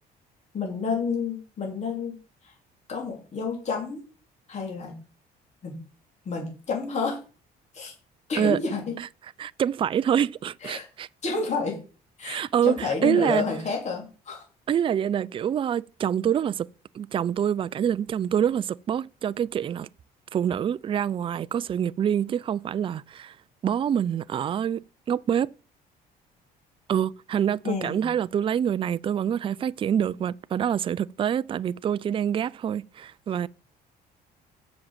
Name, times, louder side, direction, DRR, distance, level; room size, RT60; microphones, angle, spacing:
voice 1, 0.5-2.1 2.4-2.5 2.9-4.0 4.5-5.0 5.6-5.8 6.2-7.2 7.7-7.9 8.3-9.0 10.6-10.9 11.2-11.8 12.2-14.4 27.6-28.0, left 4 dB, 40° left, 3.3 m, -30 dB
voice 2, 9.4-11.1 12.2-13.4 14.7-16.7 16.9-19.9 20.3-23.4 23.6-25.5 26.9-33.5, right 9 dB, 30° right, 0.4 m, -26 dB
7.7 x 6.2 x 7.3 m
cardioid pair, 110°, 17 cm